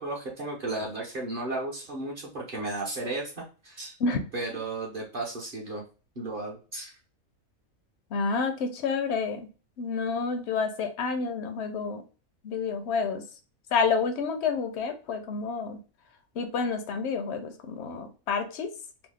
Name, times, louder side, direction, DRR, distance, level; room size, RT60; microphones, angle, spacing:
voice 1, 0.0-4.0 4.3-5.8 6.2-6.9, right 2 dB, 45° right, -3 dB, 0.8 m, -34 dB
voice 2, 8.1-9.5 9.8-12.0 12.4-13.2 13.7-15.8 16.4-18.7, left 5 dB, 65° left, 8 dB, 0.7 m, -29 dB
3.0 x 2.0 x 3.3 m, 0.35 s
omnidirectional pair, 1.5 m